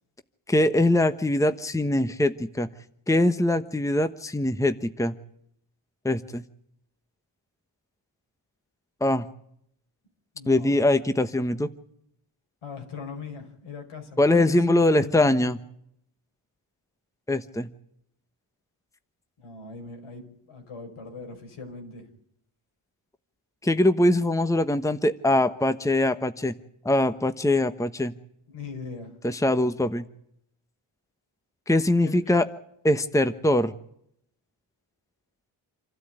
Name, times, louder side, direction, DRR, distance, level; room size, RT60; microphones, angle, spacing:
voice 1, 0.5-2.7 3.1-5.2 6.0-6.4 9.0-9.2 10.5-11.7 14.2-15.6 17.3-17.7 23.6-26.5 26.8-28.1 29.2-30.0 31.7-32.5 32.8-33.7, left 1 dB, 5° left, 10 dB, 1.2 m, -22 dB
voice 2, 10.3-10.7 12.6-15.5 19.4-22.1 28.5-29.1 32.0-32.3, left 4 dB, 80° left, 4 dB, 5.2 m, -39 dB
27.5 x 12.5 x 9.0 m, 0.72 s
cardioid pair, 65°, 49 cm